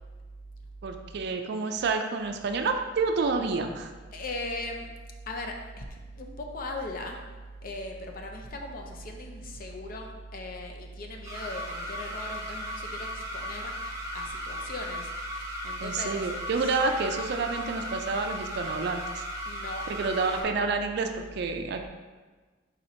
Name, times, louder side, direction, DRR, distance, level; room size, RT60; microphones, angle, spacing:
voice 1, 0.8-3.9 15.8-19.2 19.9-21.9, right 4 dB, 60° right, 6 dB, 0.4 m, -29 dB
voice 2, 4.1-4.9 5.3-7.3 7.6-16.8 19.5-19.9, left 1 dB, 50° left, 2 dB, 0.5 m, -38 dB
sound 1, 11.2-20.4, equal, 15° right, 0.7 m, -37 dB
4.3 x 4.1 x 2.7 m, 1.3 s
head